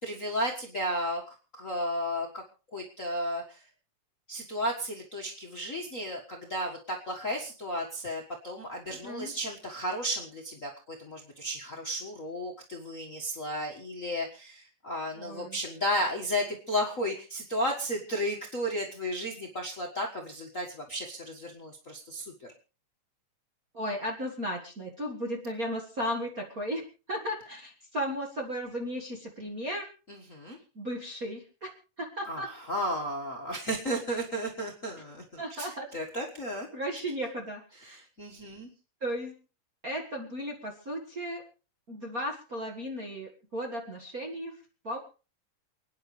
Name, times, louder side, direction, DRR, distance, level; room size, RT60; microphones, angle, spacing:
voice 1, 0.0-2.4 2.7-3.6 4.3-22.3 30.1-30.6 32.3-32.4 32.7-36.7 36.9-37.0 37.9-38.7, equal, 35° left, 0 dB, 1.3 m, -33 dB
voice 2, 8.9-9.3 15.2-15.6 23.7-29.9 30.7-31.7 32.0-32.5 35.4-35.9 36.7-38.0 39.0-39.3 39.8-41.4 41.9-44.5 44.8-45.0, equal, 35° right, 0 dB, 1.5 m, -35 dB
29.0 x 9.9 x 3.3 m, 0.35 s
omnidirectional pair, 3.8 m